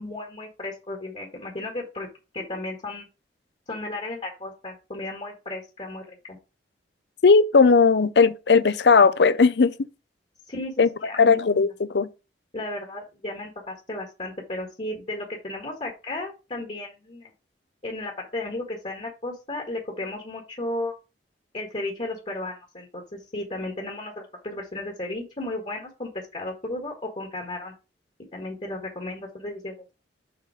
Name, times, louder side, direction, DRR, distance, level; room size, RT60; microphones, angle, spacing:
voice 1, 0.0-2.1 2.3-3.0 3.7-6.4 10.5-10.7 11.0-11.4 12.5-17.3 17.8-20.9 21.5-27.7 28.3-29.7, left 2 dB, 40° left, 1.6 m, -34 dB
voice 2, 7.2-9.7 10.8-10.9 11.2-12.1, left 4 dB, 70° left, 0.6 m, -17 dB
6.9 x 4.1 x 5.0 m
head